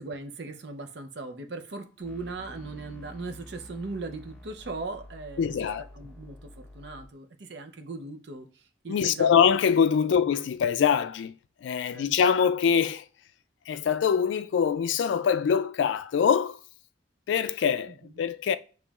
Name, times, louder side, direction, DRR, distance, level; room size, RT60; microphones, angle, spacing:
voice 1, 0.0-5.5 5.9-9.3 10.0-10.1 11.9-12.1 17.9-18.2, right 3 dB, 65° right, 0.6 m, -39 dB
sound 1, 2.0-7.1, left 1 dB, 10° left, 0.8 m, -48 dB
voice 2, 5.4-5.9 8.9-11.3 11.6-13.0 13.7-16.6 17.3-18.6, left 7 dB, 75° left, 0.3 m, -24 dB
6.9 x 3.1 x 2.4 m
head